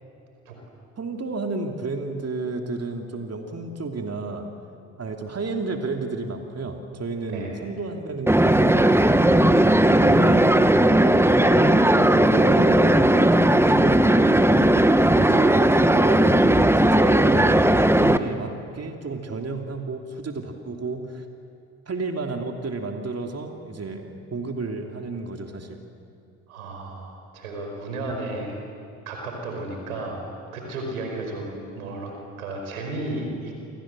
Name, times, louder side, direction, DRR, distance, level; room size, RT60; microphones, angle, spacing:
voice 1, 1.0-4.5 5.0-8.9 9.7-14.6 15.3-21.2 21.9-25.8, right 3 dB, 35° right, 3 dB, 3.2 m, -31 dB
voice 2, 7.2-7.5 26.5-28.6 29.0-32.1 32.4-33.5, right 2 dB, 90° right, 2 dB, 4.8 m, -33 dB
sound 1, 8.3-18.2, right 1 dB, 5° right, 1.4 m, -17 dB
29.0 x 25.0 x 7.7 m, 2.7 s
hypercardioid pair, 50°, 41 cm